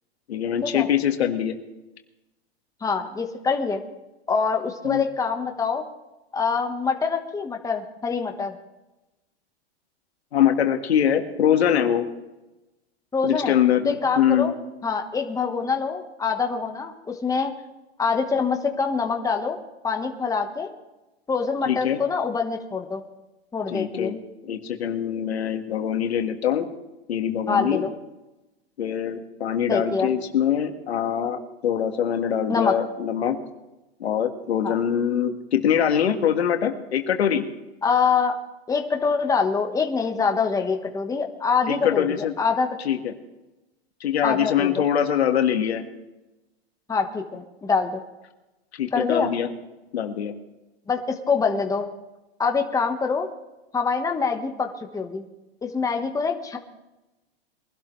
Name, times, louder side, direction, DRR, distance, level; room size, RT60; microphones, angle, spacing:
voice 1, 0.3-1.5 4.8-5.0 10.3-12.1 13.2-14.5 21.7-22.0 23.7-24.2 24.5-26.7 27.1-27.8 28.8-33.4 34.0-37.5 41.7-42.3 42.9-43.1 44.0-45.8 48.8-49.5 49.9-50.3, left 9 dB, 85° left, 5 dB, 1.8 m, -23 dB
voice 2, 2.8-3.8 4.3-5.8 6.3-8.5 13.1-13.5 13.8-14.6 14.8-17.5 18.0-19.6 19.8-20.7 21.3-23.0 23.5-24.1 27.5-27.9 29.7-30.1 32.5-32.7 34.6-34.7 37.8-38.3 38.7-42.7 44.2-44.9 46.9-48.0 48.9-49.3 50.9-51.9 52.4-53.3 53.7-55.2 55.6-56.6, left 5 dB, 10° left, 4 dB, 1.3 m, -25 dB
23.0 x 12.0 x 3.3 m, 1.0 s
hypercardioid pair, 125°, 31 cm